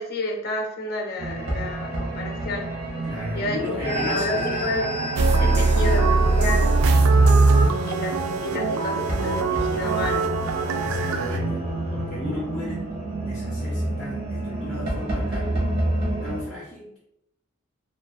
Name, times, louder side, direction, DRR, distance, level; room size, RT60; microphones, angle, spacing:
voice 1, 0.0-2.7 3.3-4.9 5.4-6.8 7.9-8.1 8.4-10.2, left 2 dB, 50° left, 2 dB, 0.5 m, -30 dB
sound 1, 1.2-16.4, right 1 dB, 45° right, 0.9 m, -29 dB
voice 2, 3.0-4.9 5.4-6.1 7.4-7.8 10.8-11.6 11.9-12.8 13.2-15.6 16.2-17.0, left 2 dB, 5° left, -9 dB, 0.5 m, -35 dB
sound 2, 5.2-11.4, right 3 dB, 70° right, 0.3 m, -20 dB
3.1 x 2.3 x 2.2 m, 0.81 s
head